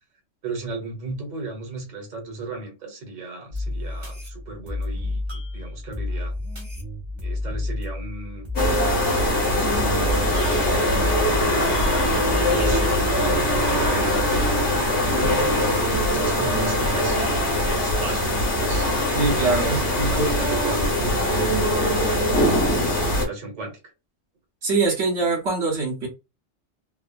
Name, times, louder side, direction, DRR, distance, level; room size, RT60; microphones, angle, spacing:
voice 1, 0.4-6.3 7.2-8.5 9.2-10.3 11.0-11.7 12.0-14.2 15.0-15.4 16.0-18.8 19.7-23.8, right 3 dB, 40° right, 1.1 m, -35 dB
sound 1, 3.5-13.5, left 2 dB, 25° right, 0.9 m, -31 dB
sound 2, 8.6-23.3, left 1 dB, 70° left, 1.3 m, -22 dB
voice 2, 19.1-20.3 24.6-26.1, right 3 dB, 70° right, 1.2 m, -23 dB
3.3 x 2.1 x 2.3 m
omnidirectional pair, 1.2 m